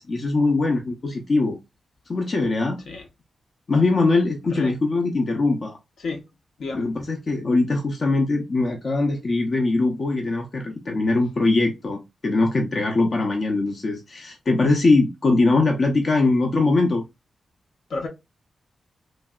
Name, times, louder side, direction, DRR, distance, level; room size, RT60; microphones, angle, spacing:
voice 1, 0.0-1.6 2.1-2.8 3.7-5.8 6.7-17.0, left 3 dB, 45° left, 0.5 m, -21 dB
voice 2, 4.4-4.7 6.0-6.2 6.6-6.9 17.9-18.1, left 3 dB, 75° left, 0.8 m, -31 dB
3.0 x 2.6 x 2.3 m
wide cardioid pair, 115°, 0 cm